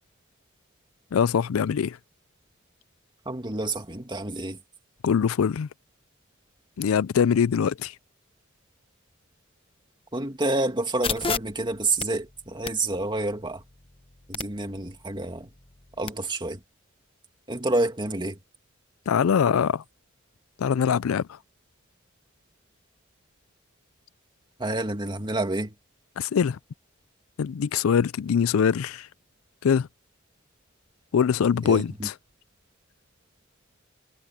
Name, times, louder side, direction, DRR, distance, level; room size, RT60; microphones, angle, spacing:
voice 1, 1.1-2.0 5.0-5.7 6.8-7.9 19.1-19.8 20.6-21.3 26.2-26.6 27.4-29.1 29.6-29.9 31.1-32.1, left 7 dB, 85° left, 0.4 m, -23 dB
voice 2, 3.3-4.6 10.1-13.6 14.3-15.5 16.0-16.6 17.5-18.4 24.6-25.7 31.6-32.1, right 2 dB, 25° right, 2.5 m, -28 dB
sound 1, 11.0-16.1, left 5 dB, 25° left, 0.9 m, -36 dB
head